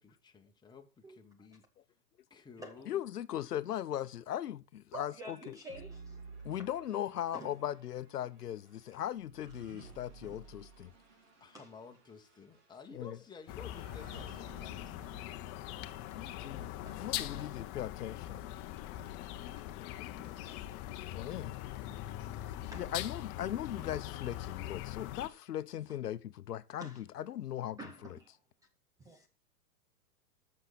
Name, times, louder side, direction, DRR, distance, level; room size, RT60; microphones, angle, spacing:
voice 1, 0.0-1.6 2.3-3.0 11.4-15.1 19.7-20.9 21.4-21.5, left 5 dB, 10° left, 1.3 m, -54 dB
voice 2, 2.9-5.6 6.4-10.9 12.9-13.2 16.1-16.7 17.0-18.4 21.1-21.6 22.6-28.2, left 11 dB, 80° left, 0.9 m, -39 dB
voice 3, 4.9-6.2 6.6-6.7 7.3-7.6 8.9-9.0 10.2-10.4 11.5-11.7 16.7-17.0 17.3-17.5 19.0-19.1 19.5-20.3 21.9-22.0 22.4-22.9 23.8-23.9 26.8-27.0 27.8-28.4 29.0-29.3, right 1 dB, 10° right, 0.5 m, -50 dB
sound 1, 5.7-17.0, right 4 dB, 50° right, 3.6 m, -55 dB
sound 2, 13.5-25.3, left 13 dB, 30° left, 0.9 m, -42 dB
13.0 x 6.6 x 4.1 m
hypercardioid pair, 125°, 46 cm